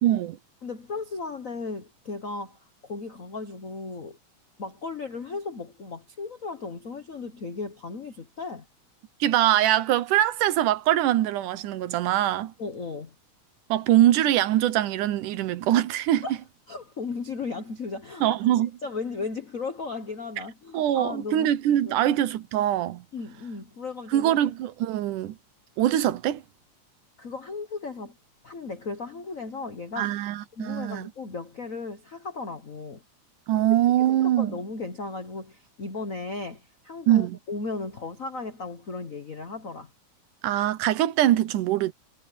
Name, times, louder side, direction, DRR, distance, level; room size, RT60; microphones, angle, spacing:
voice 1, 0.0-0.4 9.2-12.5 13.7-16.3 18.2-18.7 20.7-23.1 24.1-25.4 25.8-26.4 30.0-31.1 33.5-34.6 37.1-37.4 40.4-41.9, right 12 dB, 85° right, 2.5 m, -23 dB
voice 2, 0.6-4.2 4.6-8.7 12.6-13.1 16.2-16.4 16.7-18.2 18.8-21.5 21.8-22.0 23.1-24.4 27.2-28.2 28.4-30.1 30.5-33.0 33.6-33.7 34.0-39.9, left 4 dB, 75° left, 0.7 m, -36 dB
omnidirectional pair, 3.5 m